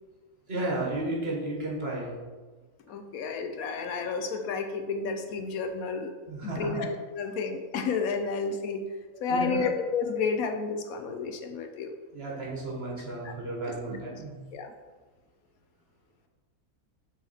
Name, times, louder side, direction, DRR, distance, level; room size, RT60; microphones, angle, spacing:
voice 1, 0.5-2.2 6.3-6.8 9.1-9.6 12.1-14.4, right 2 dB, 45° right, -3 dB, 1.5 m, -33 dB
voice 2, 2.9-6.1 6.4-8.8 9.2-11.9 13.2-13.3 14.5-14.7, left 4 dB, 75° left, 6 dB, 1.0 m, -31 dB
7.1 x 4.0 x 4.1 m, 1.3 s
omnidirectional pair, 1.6 m